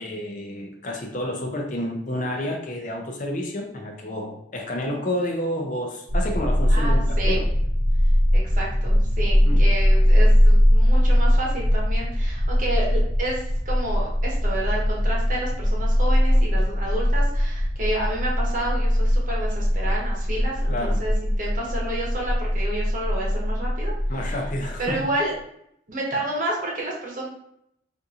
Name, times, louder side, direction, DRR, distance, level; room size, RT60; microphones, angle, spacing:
voice 1, 0.0-7.5 9.4-9.6 20.7-21.0 24.1-25.0, left 1 dB, 45° left, 2 dB, 0.5 m, -30 dB
sound 1, 6.1-25.0, equal, 85° left, 0.9 m, -21 dB
voice 2, 6.7-7.4 8.3-23.9 24.3-24.4 24.8-25.3 25.9-27.3, right 1 dB, 45° right, -3 dB, 0.9 m, -30 dB
3.6 x 2.5 x 2.7 m, 0.74 s
head